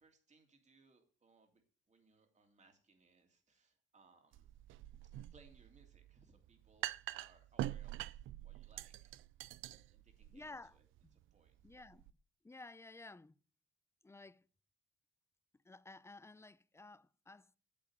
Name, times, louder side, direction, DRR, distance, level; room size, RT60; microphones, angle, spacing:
voice 1, 0.0-4.5 5.3-9.1 9.9-10.9 11.3-11.6, right 3 dB, 35° right, 2.9 m, -68 dB
sound 1, 4.3-12.1, right 14 dB, 80° right, 0.5 m, -46 dB
voice 2, 10.3-10.8 11.0-11.1 11.6-12.0 12.4-13.3 14.0-14.4 15.6-17.5, left 2 dB, 15° left, 0.6 m, -54 dB
8.6 x 8.3 x 8.8 m
cardioid pair, 90°, 20 cm